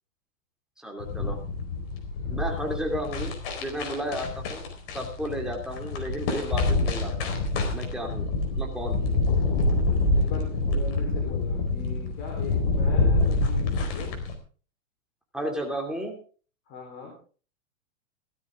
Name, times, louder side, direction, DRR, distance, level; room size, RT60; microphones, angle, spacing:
voice 1, 0.8-1.4 2.3-4.6 4.9-7.3 7.7-8.3 8.6-9.0 15.3-16.2 17.1-17.2, equal, ahead, 1 dB, 2.6 m, -33 dB
sound 1, 1.0-14.3, left 3 dB, 45° left, 4.5 m, -27 dB
voice 2, 10.1-14.2 16.7-17.1, left 4 dB, 30° left, 0 dB, 4.0 m, -41 dB
16.5 x 13.5 x 3.7 m, 0.40 s
supercardioid pair, 160°, 39 cm